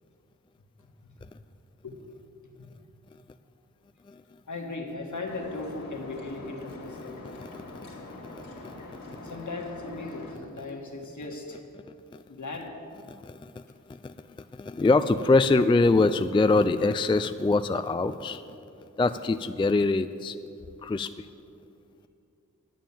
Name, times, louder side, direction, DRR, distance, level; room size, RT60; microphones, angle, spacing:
voice 1, 4.5-7.2 9.2-11.6 12.3-12.7, left 3 dB, 60° left, 2 dB, 1.8 m, -37 dB
sound 1, 5.2-10.4, left 2 dB, 90° left, 2.2 m, -43 dB
voice 2, 7.0-7.9 8.4-8.7 13.1-13.5 14.0-14.1 14.5-18.4 19.0-20.4 20.8-21.3, left 3 dB, 15° left, 11 dB, 0.4 m, -24 dB
11.5 x 7.4 x 7.2 m, 2.6 s
cardioid pair, 40°, 33 cm